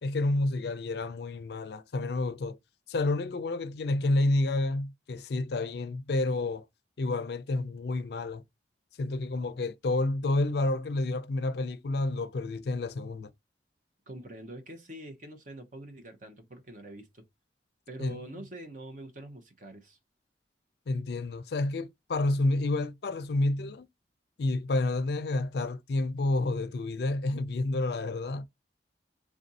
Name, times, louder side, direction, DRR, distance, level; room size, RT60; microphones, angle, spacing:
voice 1, 0.0-2.6 2.9-6.7 7.0-8.4 9.0-13.3 18.0-18.4 20.9-23.9 24.4-28.5, left 2 dB, 60° left, 0.4 m, -29 dB
voice 2, 14.1-17.2 17.9-20.0, right 1 dB, 45° right, 0.8 m, -45 dB
3.5 x 2.6 x 4.0 m
head